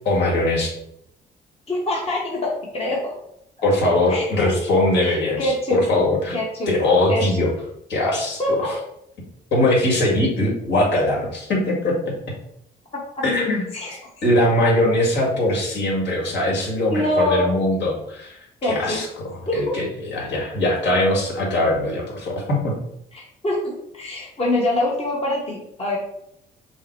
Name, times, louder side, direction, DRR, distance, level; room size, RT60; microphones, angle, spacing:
voice 1, 0.1-0.7 3.6-6.4 6.7-7.5 7.9-8.7 9.5-12.1 13.2-13.6 14.2-22.7, left 1 dB, 60° left, -2 dB, 1.8 m, -21 dB
voice 2, 1.7-3.1 4.1-4.5 5.0-5.8 6.3-6.7 7.1-7.5 8.4-8.7 12.9-13.2 13.7-14.0 16.9-17.5 18.6-19.0 19.5-19.7 23.1-26.0, left 1 dB, 30° left, -3 dB, 1.1 m, -25 dB
5.5 x 2.1 x 4.5 m, 0.75 s
cardioid pair, 90°, 20 cm